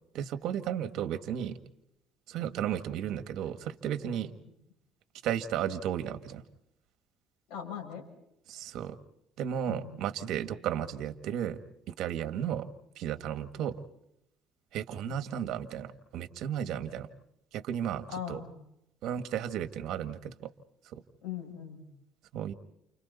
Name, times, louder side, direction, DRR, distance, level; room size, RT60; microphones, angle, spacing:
voice 1, 0.1-1.6 2.3-4.3 5.2-6.4 8.5-9.0 9.4-11.6 11.9-12.7 13.0-13.8 14.7-17.1 17.5-18.4 19.0-20.5 20.9-21.0 22.3-22.5, right 9 dB, 70° right, 10 dB, 1.8 m, -34 dB
voice 2, 7.5-8.1 9.7-10.0 15.1-15.2 18.1-18.7 21.2-21.9, left 8 dB, 80° left, 2 dB, 7.4 m, -40 dB
30.0 x 29.5 x 4.2 m, 0.78 s
cardioid pair, 115°, 0 cm